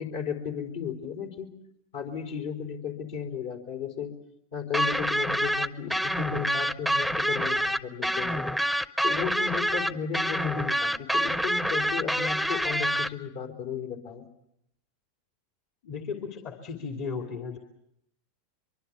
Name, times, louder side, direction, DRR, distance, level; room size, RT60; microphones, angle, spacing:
voice 1, 0.0-1.5 1.9-4.1 4.5-8.4 9.0-14.2, left 7 dB, 65° left, 3 dB, 4.5 m, -34 dB
sound 1, 4.7-13.1, equal, 5° left, 0.8 m, -27 dB
voice 2, 15.8-17.6, left 5 dB, 50° left, 4 dB, 2.8 m, -35 dB
24.0 x 24.0 x 6.9 m, 0.78 s
hypercardioid pair, 95°, 0 cm